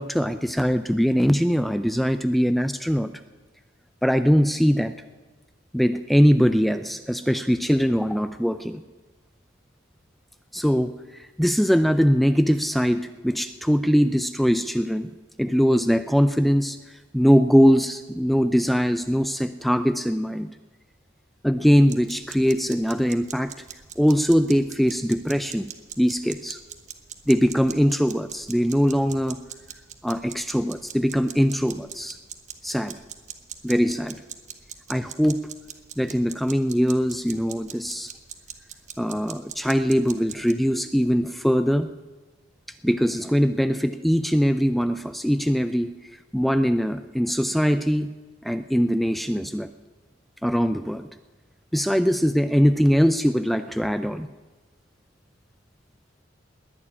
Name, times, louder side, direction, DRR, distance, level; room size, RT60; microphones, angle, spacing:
voice 1, 0.0-3.1 4.0-4.9 5.7-8.8 10.5-15.1 15.4-16.8 17.1-20.5 21.4-23.5 24.0-25.7 26.0-26.6 27.3-29.4 30.0-32.2 32.6-32.9 33.6-34.2 34.9-35.4 36.0-38.1 39.0-41.9 42.8-45.9 46.3-48.1 48.4-49.7 50.4-51.1 51.7-54.3, equal, ahead, 10 dB, 0.4 m, -21 dB
sound 1, 21.9-40.5, right 9 dB, 35° right, 1.1 m, -42 dB
20.0 x 7.3 x 9.6 m, 1.2 s
head